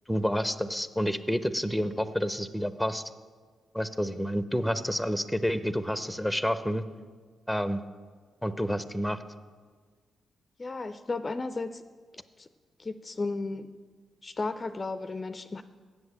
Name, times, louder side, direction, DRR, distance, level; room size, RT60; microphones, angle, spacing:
voice 1, 0.1-3.0 3.7-6.8 7.5-7.8 8.4-9.2, equal, ahead, 12 dB, 0.7 m, -29 dB
voice 2, 10.6-11.8 12.4-12.5 12.8-13.7 14.2-15.6, left 3 dB, 35° left, 10 dB, 0.4 m, -34 dB
7.9 x 7.1 x 8.4 m, 1.5 s
hypercardioid pair, 45°, 0 cm